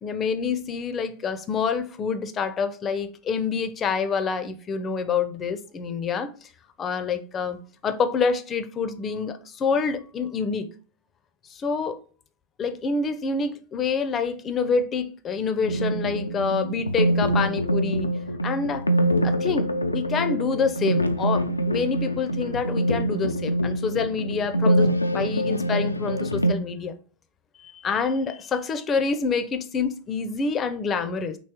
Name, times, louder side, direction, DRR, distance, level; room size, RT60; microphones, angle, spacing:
voice 1, 0.0-6.5 6.8-10.7 11.5-12.0 12.6-18.1 18.4-18.8 19.2-27.0 27.7-31.4, left 5 dB, 25° left, 0.5 m, -27 dB
sound 1, 15.6-26.5, equal, 85° left, 0.3 m, -24 dB
4.6 x 2.9 x 2.8 m
figure-of-eight pair, 90°, 0 cm